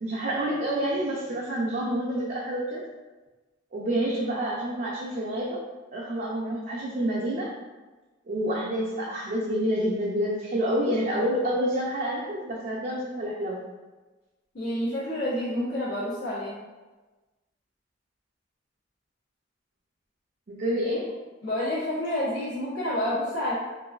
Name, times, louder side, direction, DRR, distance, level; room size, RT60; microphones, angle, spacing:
voice 1, 0.0-2.8 3.7-5.6 5.9-7.5 8.3-13.6 20.5-21.1, right 1 dB, 45° right, -5 dB, 0.5 m, -28 dB
voice 2, 14.5-16.5 21.4-23.5, left 1 dB, 70° left, -12 dB, 1.1 m, -29 dB
3.9 x 2.5 x 2.4 m, 1.2 s
head